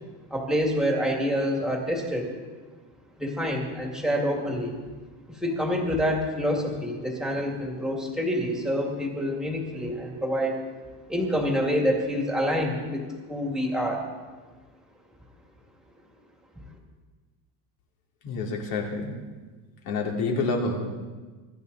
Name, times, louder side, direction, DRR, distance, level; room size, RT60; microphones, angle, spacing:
voice 1, 0.3-2.3 3.2-4.8 5.3-10.6 11.1-14.1, equal, ahead, 0 dB, 2.2 m, -27 dB
voice 2, 18.2-19.1 19.8-20.8, left 3 dB, 55° left, 0 dB, 3.2 m, -28 dB
23.0 x 11.5 x 4.1 m, 1.4 s
cardioid pair, 170°, 43 cm